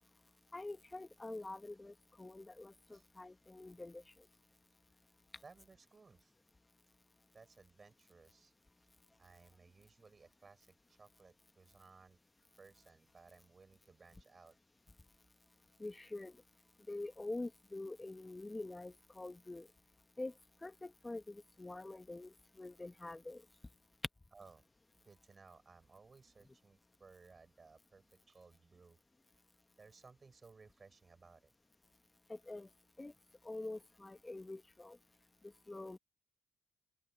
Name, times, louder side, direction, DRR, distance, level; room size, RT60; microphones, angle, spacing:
voice 1, 0.5-4.0 15.8-16.3 16.9-19.7 20.2-20.3 20.6-23.4 32.3-32.7 33.0-33.1 33.4-35.0 35.7-36.0, left 2 dB, 20° left, 1.4 m, -46 dB
voice 2, 5.4-6.3 7.3-8.5 8.8-8.9 9.2-12.2 12.6-14.6 24.3-24.6 25.0-29.0 29.8-31.5, right 4 dB, 40° right, 6.5 m, -61 dB
open air
supercardioid pair, 50°, 0 cm